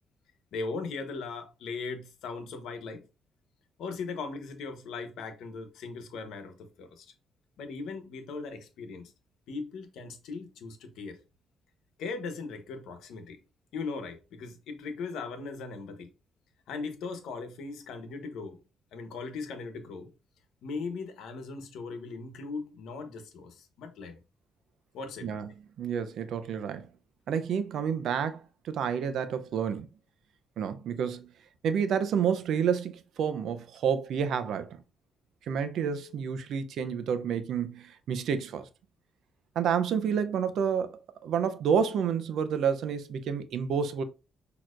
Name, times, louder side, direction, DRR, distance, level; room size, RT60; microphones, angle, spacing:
voice 1, 0.5-3.0 3.8-7.1 7.6-9.1 9.5-11.2 12.0-13.4 13.7-16.1 16.7-18.6 18.9-20.1 20.6-24.2 24.9-25.4, left 4 dB, 80° left, 1.0 m, -38 dB
voice 2, 25.2-26.9 27.3-29.9 30.6-31.3 31.6-34.8 35.5-38.7 39.6-44.0, right 7 dB, 75° right, 0.6 m, -29 dB
6.2 x 2.9 x 2.5 m
cardioid pair, 90°, 0 cm